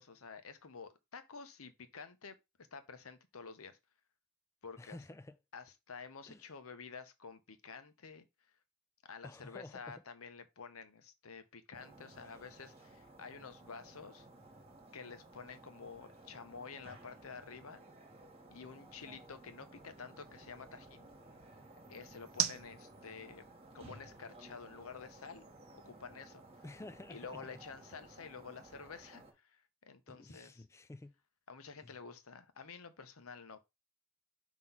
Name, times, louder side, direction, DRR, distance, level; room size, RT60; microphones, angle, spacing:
voice 1, 0.0-2.3 2.7-3.8 4.6-5.0 5.5-8.3 9.1-14.3 14.9-17.8 18.5-21.1 21.9-23.4 23.7-25.5 25.8-26.4 27.1-30.6 31.5-33.6, left 5 dB, 80° left, 0.9 m, -50 dB
voice 2, 4.8-5.4 6.3-6.5 9.2-10.0 26.6-27.4 30.1-31.1 31.8-31.9, left 2 dB, 15° left, 0.4 m, -51 dB
sound 1, 11.7-29.3, right 2 dB, 30° right, 1.7 m, -57 dB
sound 2, 12.6-26.8, right 12 dB, 65° right, 0.6 m, -48 dB
5.9 x 3.0 x 5.5 m
head